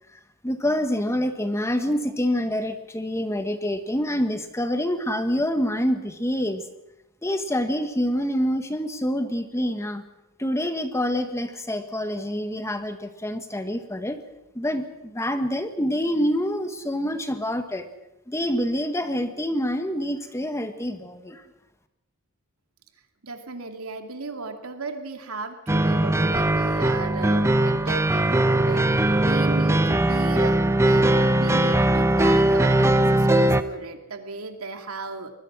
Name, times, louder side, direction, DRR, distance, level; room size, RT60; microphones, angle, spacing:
voice 1, 0.4-6.6 7.2-10.0 10.4-14.2 14.5-17.9 18.3-21.4, equal, 15° left, 8 dB, 1.6 m, -26 dB
voice 2, 23.2-35.3, right 3 dB, 85° right, 5 dB, 2.6 m, -35 dB
sound 1, 25.7-33.6, right 1 dB, 15° right, 0.9 m, -20 dB
24.5 x 20.0 x 6.2 m, 0.90 s
head